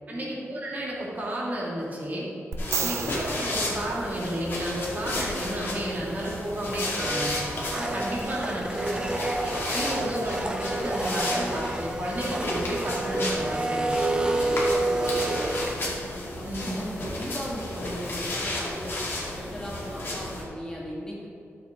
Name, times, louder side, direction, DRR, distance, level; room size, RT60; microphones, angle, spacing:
voice 1, 0.1-2.3 2.8-7.4 7.7-9.1 9.4-13.9 16.4-16.9, right 1 dB, 40° right, -5 dB, 2.2 m, -32 dB
sound 1, 2.5-4.8 8.2-8.3, right 5 dB, 75° right, 0.7 m, -33 dB
sound 2, 2.6-20.4, left 1 dB, 55° left, 2.3 m, -33 dB
voice 2, 2.6-3.0 9.6-9.9 14.4-18.9 19.4-21.3, equal, 15° left, -5 dB, 2.0 m, -38 dB
Domestic sounds home sounds, 7.0-15.7, right 2 dB, 20° right, 0.6 m, -29 dB
13.5 x 7.3 x 3.8 m, 2.6 s
wide cardioid pair, 155°, 5 cm